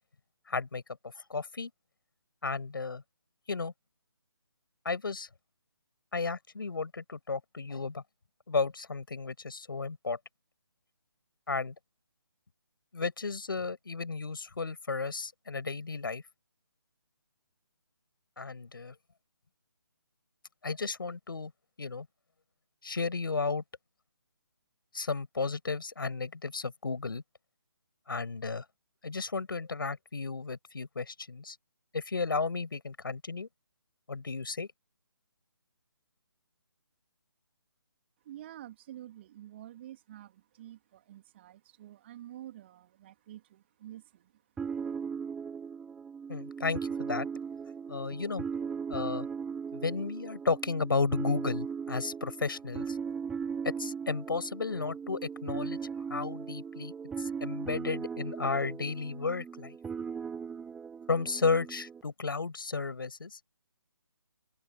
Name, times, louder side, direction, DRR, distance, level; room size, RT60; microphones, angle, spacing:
voice 1, 0.5-0.8 1.3-1.7 2.4-3.0 3.5-3.7 4.8-5.3 6.1-8.0 8.5-10.2 11.5-11.7 12.9-16.2 18.4-18.9 20.6-21.5 21.8-22.1 22.8-23.6 24.9-27.2 28.1-28.6 29.0-31.6 31.9-33.5 34.1-34.7 46.3-47.3 47.9-48.4 48.9-49.3 49.7-53.0 53.6-55.8 56.1-59.8 61.1-63.4, left 4 dB, 60° left, 5.8 m, -33 dB
voice 2, 38.2-44.3, right 12 dB, 30° right, 3.0 m, -48 dB
sound 1, 44.6-62.0, right 6 dB, 5° right, 1.1 m, -38 dB
open air
figure-of-eight pair, 145°, 13 cm